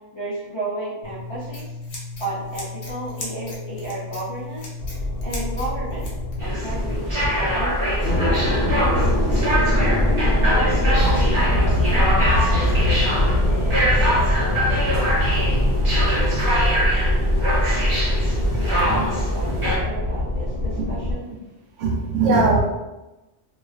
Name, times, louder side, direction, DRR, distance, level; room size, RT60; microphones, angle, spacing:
voice 1, 0.1-1.8 2.2-4.8 5.2-6.1 6.4-14.7 17.5-17.9 18.6-21.3, right 1 dB, 45° left, -11 dB, 0.3 m, -34 dB
Scissors, 1.0-6.4, left 3 dB, 85° left, 1.0 m, -35 dB
sound 1, 4.8-21.1, left 1 dB, 60° left, 0.8 m, -22 dB
sound 2, 6.4-19.8, equal, 30° right, 0.7 m, -23 dB
voice 2, 18.6-19.1 21.8-22.6, right 3 dB, 85° right, -1 dB, 1.0 m, -20 dB
2.4 x 2.2 x 2.3 m, 1.0 s
omnidirectional pair, 1.2 m